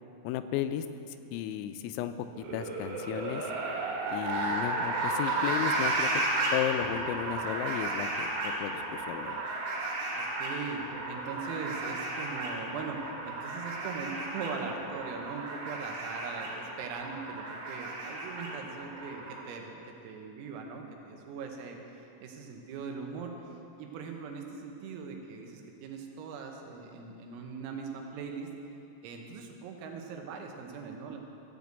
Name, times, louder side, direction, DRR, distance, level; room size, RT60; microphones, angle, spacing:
voice 1, 0.2-0.9 1.3-3.5 4.1-6.2 6.5-9.4, left 11 dB, 85° left, 9 dB, 3.2 m, -34 dB
sound 1, 2.3-19.4, right 2 dB, 65° right, 4.3 m, -34 dB
voice 2, 10.1-23.3 23.8-28.5 29.0-31.2, right 5 dB, 85° right, 2 dB, 3.8 m, -40 dB
15.0 x 5.2 x 8.1 m, 2.8 s
omnidirectional pair, 5.9 m